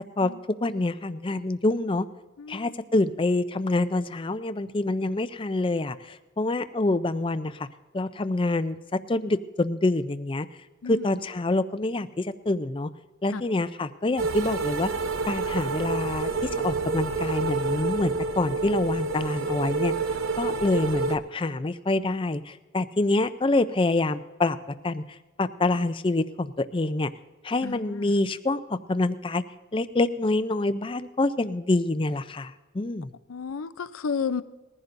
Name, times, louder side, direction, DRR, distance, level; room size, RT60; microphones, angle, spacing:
voice 1, 0.6-2.0 2.5-7.7 7.9-10.5 10.9-12.9 13.2-14.9 15.3-19.9 20.4-24.6 24.8-27.1 27.4-29.4 29.7-33.1, left 2 dB, 25° left, 12 dB, 0.4 m, -26 dB
sound 1, 14.2-21.2, right 4 dB, 80° right, 0.8 m, -28 dB
voice 2, 27.6-28.1 33.3-34.4, left 5 dB, 85° left, 14 dB, 0.5 m, -32 dB
20.5 x 15.0 x 2.6 m, 1.2 s
head